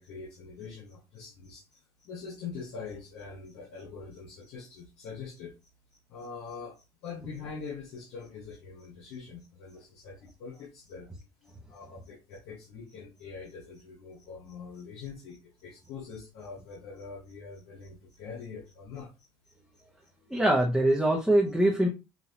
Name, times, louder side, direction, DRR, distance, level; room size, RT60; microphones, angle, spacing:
voice 1, 0.0-5.5 5.9-19.1 19.4-19.5, left 5 dB, 80° left, -2 dB, 1.3 m, -44 dB
voice 2, 20.3-21.9, right 1 dB, ahead, -2 dB, 0.9 m, -23 dB
5.9 x 2.6 x 2.9 m, 0.27 s
supercardioid pair, 100°, 10 cm